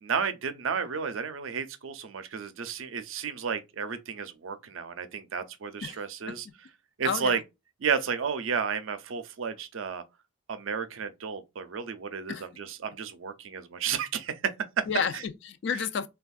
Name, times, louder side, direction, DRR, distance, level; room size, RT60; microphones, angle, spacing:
voice 1, 0.0-6.5 7.0-7.4 7.8-10.0 10.5-14.8 15.1-15.2, right 6 dB, 75° right, 0.5 m, -32 dB
voice 2, 7.0-7.4 12.3-12.5 14.9-16.1, left 6 dB, 60° left, 0.3 m, -31 dB
3.4 x 2.3 x 2.3 m
head